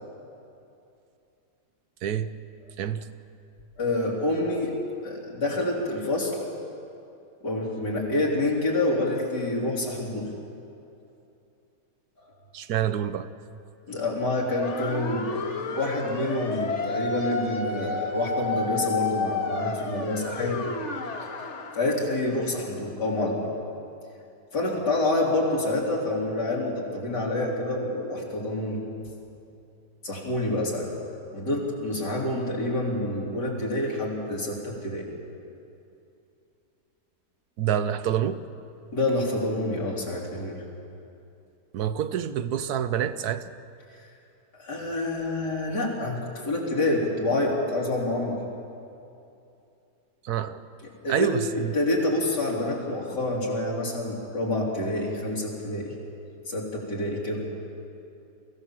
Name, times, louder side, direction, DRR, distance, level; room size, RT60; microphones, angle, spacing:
voice 1, 2.0-2.3 2.8-3.1 12.5-13.3 37.6-38.4 41.7-43.5 50.2-50.6 51.1-51.7, right 9 dB, 70° right, 12 dB, 1.2 m, -27 dB
voice 2, 3.8-4.8 5.0-6.4 7.4-10.3 12.2-12.3 13.9-20.7 21.4-23.4 24.5-28.8 30.0-30.9 31.3-35.1 38.9-40.6 44.6-48.4 51.0-51.3 51.7-55.9 56.5-57.6, left 2 dB, 90° left, -3 dB, 4.1 m, -27 dB
sound 1, 14.6-21.8, left 4 dB, 45° left, 1.4 m, -31 dB
23.5 x 15.5 x 7.4 m, 2.7 s
omnidirectional pair, 1.8 m